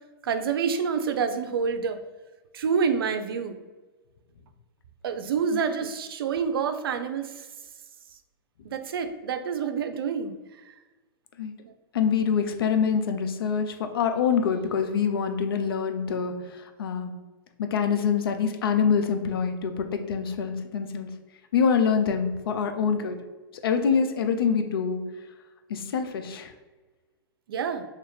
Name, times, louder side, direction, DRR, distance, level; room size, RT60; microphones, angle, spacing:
voice 1, 0.2-2.0 2.5-3.6 5.0-7.5 8.6-10.4 10.6-10.7 11.6-11.7 27.5-27.8, right 6 dB, 85° right, 8 dB, 0.5 m, -27 dB
voice 2, 11.9-17.2 17.6-21.1 21.5-23.2 23.6-25.1 25.7-26.5, left 6 dB, 85° left, 6 dB, 0.5 m, -25 dB
2.9 x 2.4 x 4.3 m, 1.2 s
hypercardioid pair, 115°, 12 cm